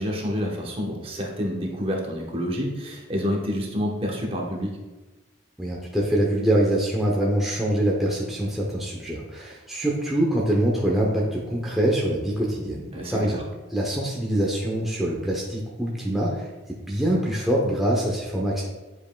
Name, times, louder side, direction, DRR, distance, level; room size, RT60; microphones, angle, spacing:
voice 1, 0.0-4.7 12.9-13.4, equal, 30° right, -1 dB, 0.9 m, -28 dB
voice 2, 5.6-13.4 13.7-16.5 16.9-18.6, right 1 dB, ahead, -4 dB, 0.7 m, -24 dB
9.6 x 5.2 x 2.2 m, 1.2 s
head